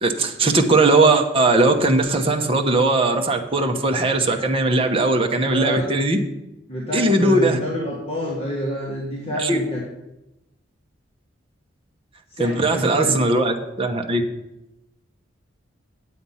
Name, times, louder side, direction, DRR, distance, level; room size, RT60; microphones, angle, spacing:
voice 1, 0.0-6.2 6.9-7.6 9.3-9.6 12.4-14.2, right 2 dB, 30° right, 4 dB, 1.0 m, -19 dB
voice 2, 5.5-5.9 6.7-9.8 12.4-13.2, equal, 30° left, -5 dB, 1.8 m, -27 dB
9.1 x 7.8 x 5.6 m, 0.94 s
head